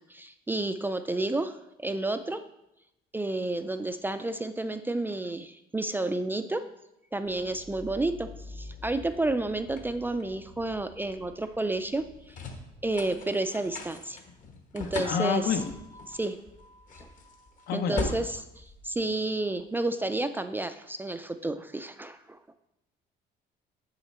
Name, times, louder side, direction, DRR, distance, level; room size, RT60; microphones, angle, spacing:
voice 1, 0.1-2.4 3.1-6.6 7.1-12.3 12.8-14.2 14.7-15.6 16.1-16.4 17.0-17.1 17.7-22.4, right 2 dB, 10° right, 9 dB, 0.3 m, -31 dB
sound 1, 7.3-19.6, left 3 dB, 50° left, 1.2 m, -42 dB
voice 2, 15.1-15.6 17.7-18.1, left 7 dB, 65° left, 8 dB, 0.8 m, -28 dB
6.7 x 5.7 x 4.2 m, 0.86 s
cardioid pair, 110°, 17 cm